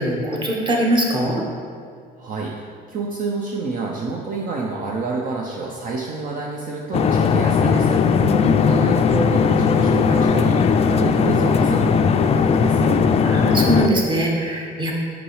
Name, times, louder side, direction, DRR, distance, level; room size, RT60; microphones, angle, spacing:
voice 1, 0.0-1.4 8.2-8.7 13.2-14.9, equal, 30° right, -1 dB, 1.3 m, -22 dB
voice 2, 2.2-8.0 8.6-13.0, right 4 dB, 55° right, -1 dB, 0.7 m, -28 dB
sound 1, 6.9-13.9, left 6 dB, 40° left, 0.4 m, -17 dB
6.0 x 5.3 x 4.8 m, 2.2 s
cardioid pair, 110°, 17 cm